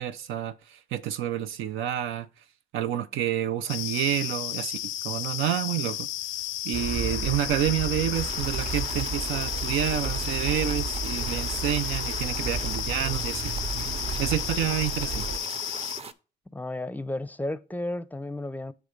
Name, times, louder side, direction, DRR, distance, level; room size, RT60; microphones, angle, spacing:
voice 1, 0.0-2.3 2.7-4.8 5.0-6.1 6.6-13.4 13.7-15.3, right 11 dB, 90° right, 0.5 m, -29 dB
sound 1, 3.7-16.0, left 13 dB, 80° left, 0.5 m, -33 dB
sound 2, 6.7-15.4, right 4 dB, 60° right, 0.8 m, -34 dB
sound 3, 8.1-16.1, right 4 dB, 30° right, 0.6 m, -40 dB
voice 2, 16.5-18.7, left 1 dB, 10° left, 0.5 m, -33 dB
8.2 x 3.4 x 5.0 m
cardioid pair, 90°, 20 cm